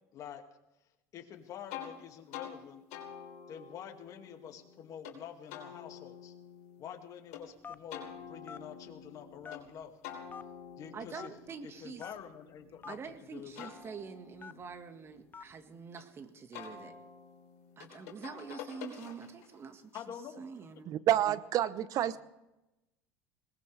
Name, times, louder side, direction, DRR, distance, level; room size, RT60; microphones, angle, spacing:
voice 1, 1.1-2.8 3.5-6.3 6.8-9.9 10.8-11.3 11.6-13.7 19.9-20.4, left 8 dB, 50° left, 4 dB, 2.2 m, -47 dB
sound 1, 1.7-1.9 2.3-2.5 2.9-5.2 5.5-7.4 7.9-9.6 10.0-12.9 13.3-16.0 16.5-19.5, left 8 dB, 75° left, 3.3 m, -48 dB
Telephone, 7.6-8.0 8.5-8.7 9.4-9.8 10.3-10.4 11.2-11.3 12.0-12.1 12.8-13.0 13.6-13.7 14.4-14.6 15.3-15.5, left 6 dB, 25° left, 0.6 m, -45 dB
voice 2, 10.9-12.1 12.9-16.9 17.8-19.9 20.4-21.0, right 5 dB, 35° right, 8 dB, 1.7 m, -46 dB
voice 3, 20.9-22.2, right 12 dB, 55° right, 16 dB, 0.8 m, -28 dB
21.5 x 19.0 x 3.4 m, 0.95 s
hypercardioid pair, 85°, 7 cm